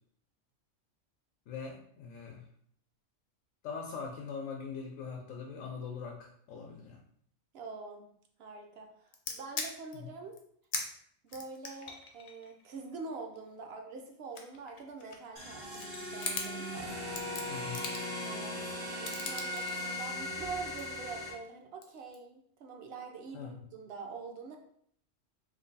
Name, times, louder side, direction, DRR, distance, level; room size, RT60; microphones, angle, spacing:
voice 1, 1.5-2.4 3.6-7.0 10.0-10.1 17.5-17.9 23.3-23.7, left 5 dB, 80° left, 0 dB, 1.0 m, -42 dB
voice 2, 7.5-8.1 8.4-10.4 11.2-16.7 18.2-24.6, right 4 dB, 60° right, 3 dB, 0.7 m, -45 dB
sound 1, 9.1-10.0 10.3-10.4 10.7-10.9 11.3-13.6 14.1-15.4 15.7-16.5 17.0-18.2 19.1-19.7 20.5-21.5 21.8-22.2, left 4 dB, 55° left, 0.6 m, -40 dB
sound 2, 15.4-21.3, left 1 dB, 85° right, 1.5 m, -38 dB
3.2 x 2.2 x 3.9 m, 0.66 s
omnidirectional pair, 1.3 m